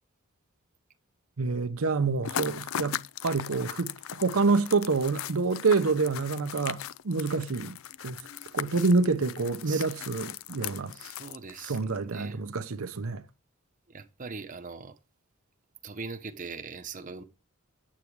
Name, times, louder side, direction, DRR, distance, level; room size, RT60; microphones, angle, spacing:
voice 1, 1.4-7.8 8.0-8.2 8.5-10.9 11.7-13.2, right 4 dB, 75° right, 0.8 m, -27 dB
sound 1, 2.2-12.0, left 10 dB, 70° left, 0.4 m, -38 dB
voice 2, 10.9-12.4 13.9-15.0 15.8-17.2, right 4 dB, 40° right, 0.8 m, -41 dB
8.7 x 8.4 x 4.7 m
head